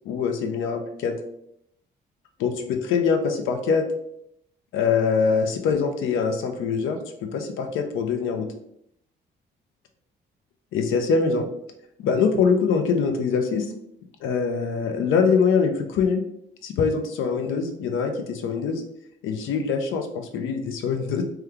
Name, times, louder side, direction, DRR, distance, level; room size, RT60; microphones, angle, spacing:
voice 1, 0.0-1.1 2.4-3.8 4.7-8.5 10.7-11.5 12.0-13.7 14.2-16.2 16.6-18.8 19.2-21.2, left 5 dB, 85° left, 6 dB, 0.6 m, -23 dB
3.0 x 2.2 x 3.5 m, 0.74 s
cardioid pair, 90°, 20 cm